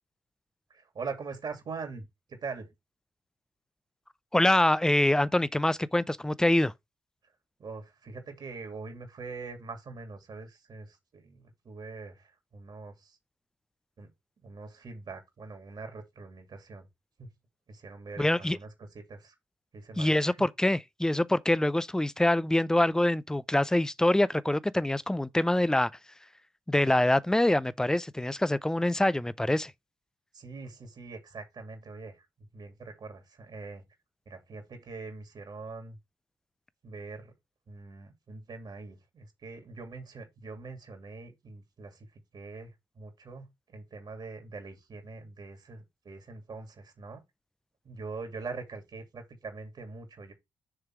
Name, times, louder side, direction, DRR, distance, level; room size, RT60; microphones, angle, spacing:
voice 1, 0.7-2.7 7.6-13.2 14.0-14.1 14.4-16.9 17.2-17.3 17.7-19.3 19.7-20.5 30.3-33.9 34.3-36.0 36.8-37.3 37.7-47.2 47.8-50.3, right 4 dB, 55° right, 2.5 m, -43 dB
voice 2, 4.3-6.7 18.2-18.6 20.0-25.9 26.7-29.7, left 1 dB, 5° left, 0.4 m, -25 dB
6.7 x 3.3 x 4.5 m
supercardioid pair, 60°, 9 cm